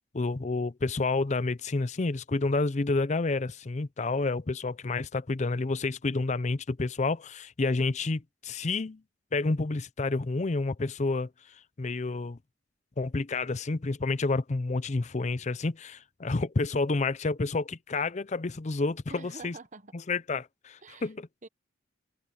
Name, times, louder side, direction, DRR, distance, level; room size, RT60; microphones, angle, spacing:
voice 1, 0.1-9.0 9.3-11.3 11.8-12.4 13.0-19.5 20.1-21.3, left 3 dB, 40° left, 0.6 m, -29 dB
voice 2, 19.1-20.0 20.8-21.1 21.4-21.5, right 3 dB, 40° right, 1.1 m, -46 dB
head